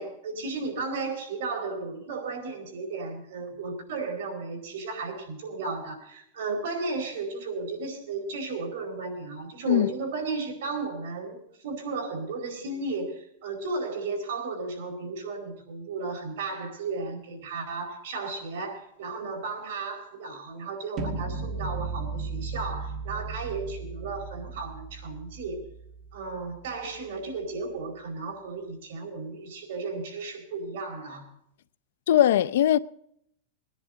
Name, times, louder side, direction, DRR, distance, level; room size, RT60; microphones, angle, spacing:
voice 1, 0.0-25.7 26.1-31.3, right 3 dB, 65° right, 4.7 m, -34 dB
sound 1, 21.0-27.0, right 4 dB, 30° right, 1.3 m, -36 dB
voice 2, 32.1-32.8, left 11 dB, 75° left, 0.5 m, -20 dB
20.5 x 10.5 x 4.0 m
supercardioid pair, 155°, 0 cm